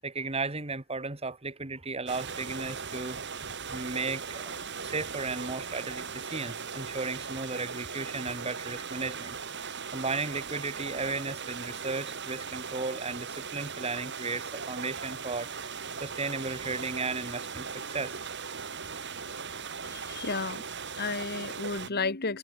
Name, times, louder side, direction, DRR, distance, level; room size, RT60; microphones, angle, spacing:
voice 1, 0.0-3.2 3.7-4.6 4.8-9.4 9.9-18.2, right 3 dB, 30° right, 1.7 m, -35 dB
sound 1, 2.1-21.9, right 5 dB, 55° right, 6.4 m, -38 dB
voice 2, 19.8-20.6 20.9-22.4, left 4 dB, 50° left, 1.9 m, -32 dB
head